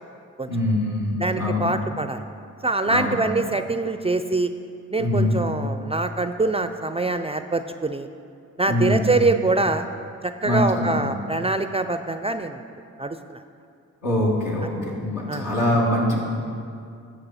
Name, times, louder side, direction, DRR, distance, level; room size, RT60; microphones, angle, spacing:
voice 1, 0.5-1.7 2.8-3.1 5.0-5.4 8.7-9.1 10.4-10.9 14.0-16.2, left 1 dB, 75° left, -4 dB, 2.3 m, -23 dB
voice 2, 1.2-2.2 2.6-4.5 4.9-8.1 8.6-9.9 10.2-12.6 13.0-13.4 15.3-15.4, right 3 dB, 20° right, 9 dB, 0.4 m, -24 dB
13.5 x 5.4 x 4.2 m, 2.4 s
cardioid pair, 55°, 32 cm